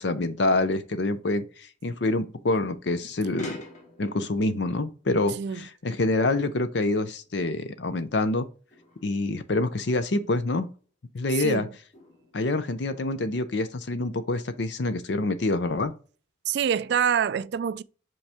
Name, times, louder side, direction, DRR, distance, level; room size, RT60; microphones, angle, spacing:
voice 1, 0.0-3.5 4.0-8.5 9.0-10.7 11.1-11.7 12.3-15.9, left 2 dB, 65° left, 0.6 m, -26 dB
sound 1, 3.4-6.2 6.5-8.0 8.7-10.0 10.7-10.8 11.6-12.9, left 1 dB, 40° left, 2.0 m, -49 dB
voice 2, 11.3-11.7 16.5-17.8, right 7 dB, 60° right, 0.3 m, -26 dB
5.4 x 5.4 x 3.5 m
head